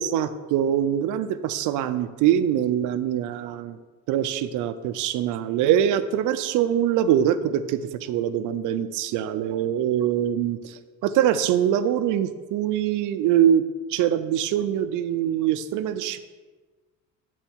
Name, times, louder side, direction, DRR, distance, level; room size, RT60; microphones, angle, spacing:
voice 1, 0.0-3.8 4.1-13.6 13.9-16.2, right 10 dB, 60° right, 11 dB, 0.5 m, -23 dB
8.8 x 4.1 x 4.5 m, 1.3 s
cardioid pair, 135°, 35 cm